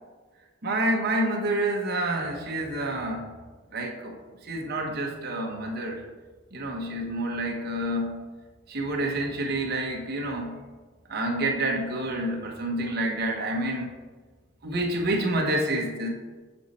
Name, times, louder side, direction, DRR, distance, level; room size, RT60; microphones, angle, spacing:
voice 1, 0.6-3.3 3.7-4.1 4.4-6.0 6.5-8.2 8.7-10.6 11.1-13.9 14.6-16.1, right 1 dB, 55° right, 0 dB, 1.0 m, -28 dB
6.6 x 5.3 x 4.2 m, 1.4 s
head